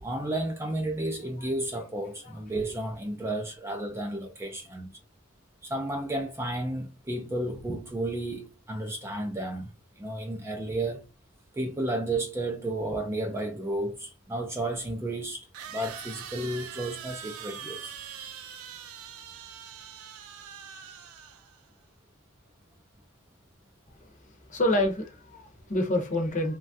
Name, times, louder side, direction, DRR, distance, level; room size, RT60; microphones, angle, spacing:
voice 1, 0.0-5.0 5.6-11.0 11.5-17.9, right 1 dB, 10° right, 0.4 m, -32 dB
sound 1, 13.9-14.0 15.5-21.7, right 8 dB, 80° right, 0.5 m, -43 dB
voice 2, 24.5-26.6, left 1 dB, 35° left, 0.7 m, -27 dB
3.1 x 2.2 x 2.6 m
head